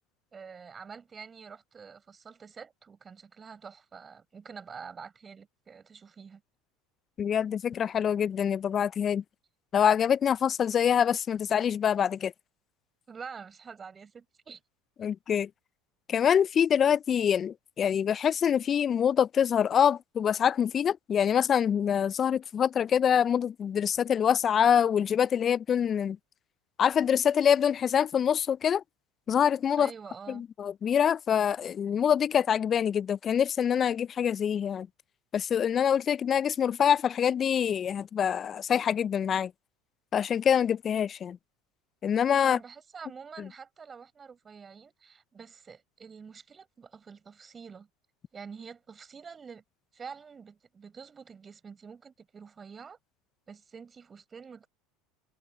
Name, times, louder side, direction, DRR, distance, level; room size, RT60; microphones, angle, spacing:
voice 1, 0.3-6.4 13.1-14.6 29.8-30.4 42.4-47.9 48.3-49.6 49.9-53.0 53.5-54.7, right 6 dB, 30° right, 5.7 m, -47 dB
voice 2, 7.2-9.2 9.7-12.3 15.0-15.5 16.1-26.2 26.8-28.8 29.3-29.9 30.3-34.9 35.3-39.5 40.1-41.4 42.0-42.6, left 8 dB, 35° left, 0.3 m, -25 dB
hypercardioid pair, 90°, 0 cm